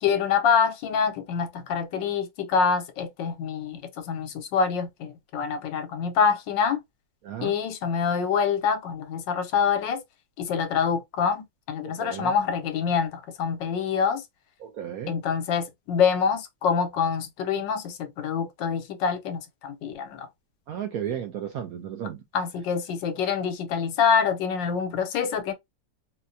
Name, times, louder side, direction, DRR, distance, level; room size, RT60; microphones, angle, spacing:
voice 1, 0.0-6.8 7.4-10.0 10.4-14.2 15.1-20.3 22.3-25.5, left 6 dB, 80° left, 1.4 m, -26 dB
voice 2, 12.0-12.3 14.6-15.1 20.7-22.2, right 9 dB, 70° right, 0.9 m, -33 dB
4.2 x 2.2 x 2.6 m
omnidirectional pair, 2.0 m